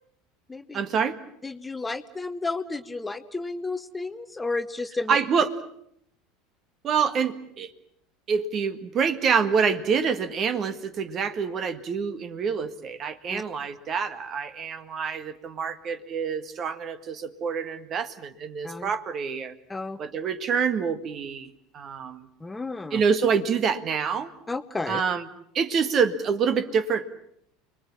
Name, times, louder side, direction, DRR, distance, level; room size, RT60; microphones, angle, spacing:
voice 1, 0.7-1.2 5.1-5.5 6.8-7.7 8.3-19.5 20.0-22.3 22.9-24.3 24.9-25.2 25.5-27.1, right 6 dB, 40° right, 11 dB, 1.7 m, -26 dB
voice 2, 1.4-5.2 13.3-13.4 18.6-18.9 19.7-20.0 22.4-23.0 24.5-25.0, left 3 dB, 15° left, 11 dB, 1.1 m, -32 dB
30.0 x 21.5 x 7.3 m, 0.72 s
figure-of-eight pair, 75°, 0 cm